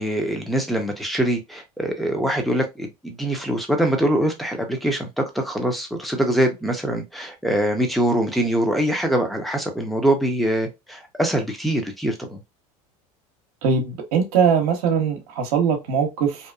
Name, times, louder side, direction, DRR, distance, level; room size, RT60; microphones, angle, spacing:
voice 1, 0.0-12.4, right 1 dB, ahead, 0.7 m, -23 dB
voice 2, 13.6-16.5, right 6 dB, 80° right, 0.8 m, -21 dB
2.7 x 2.2 x 2.2 m
hypercardioid pair, 95°, 19 cm